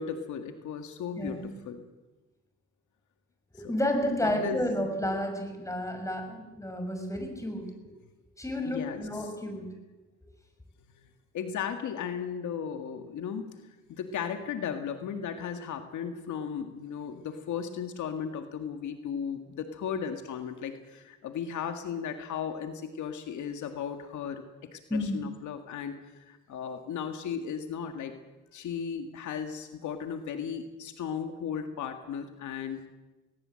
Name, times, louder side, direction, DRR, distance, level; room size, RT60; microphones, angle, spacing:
voice 1, 0.0-1.8 4.2-4.9 8.7-9.3 11.3-13.5 13.9-24.4 24.7-28.2 28.5-32.9, left 7 dB, 75° left, 6 dB, 2.0 m, -36 dB
voice 2, 1.2-1.6 3.5-7.7 8.4-9.7 24.9-25.2, left 1 dB, 10° left, 4 dB, 6.3 m, -31 dB
19.5 x 19.0 x 7.8 m, 1.1 s
cardioid pair, 90°, 30 cm